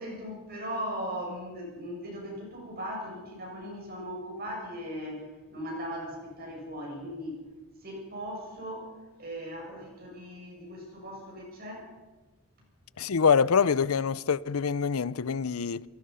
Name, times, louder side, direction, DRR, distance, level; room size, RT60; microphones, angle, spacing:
voice 1, 0.0-7.4 7.8-11.9, equal, 45° right, 7.5 m, -38 dB
voice 2, 13.0-15.8, left 6 dB, 85° left, 0.6 m, -25 dB
28.0 x 17.5 x 5.7 m
head